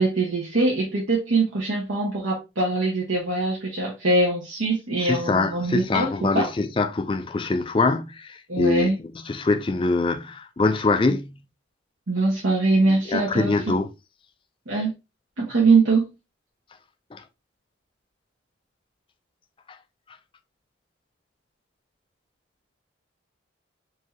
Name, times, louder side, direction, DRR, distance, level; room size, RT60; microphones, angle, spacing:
voice 1, 0.0-6.5 8.5-9.0 12.1-13.8 14.7-14.9 15.4-16.1, right 3 dB, 85° right, 1.1 m, -22 dB
voice 2, 5.0-8.9 9.2-11.4 13.1-13.9 17.1-17.2, left 3 dB, 25° left, 0.3 m, -24 dB
4.5 x 2.7 x 3.0 m
head